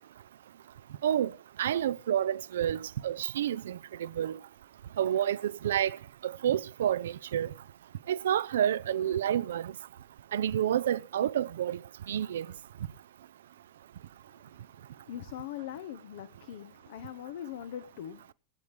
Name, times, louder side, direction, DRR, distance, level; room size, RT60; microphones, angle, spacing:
voice 1, 1.6-4.4 5.0-6.0 6.2-7.5 8.1-9.7 10.3-11.8 12.1-12.5, right 10 dB, 60° right, 0.6 m, -29 dB
voice 2, 14.9-18.3, left 11 dB, 55° left, 1.0 m, -41 dB
21.5 x 9.5 x 3.4 m
figure-of-eight pair, 90°, 0 cm